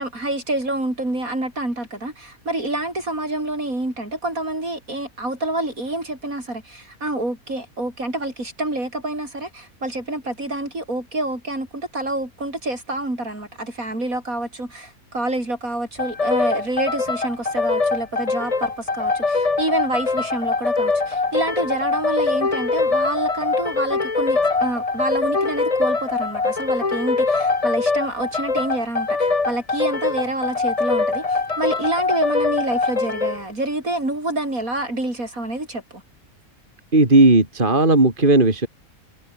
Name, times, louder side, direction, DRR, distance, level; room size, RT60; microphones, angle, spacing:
voice 1, 0.0-36.0, right 1 dB, 65° right, 8.1 m, -27 dB
sound 1, 16.0-33.4, left 3 dB, 25° left, 1.3 m, -23 dB
voice 2, 36.9-38.7, right 2 dB, 35° right, 3.4 m, -15 dB
omnidirectional pair, 1.5 m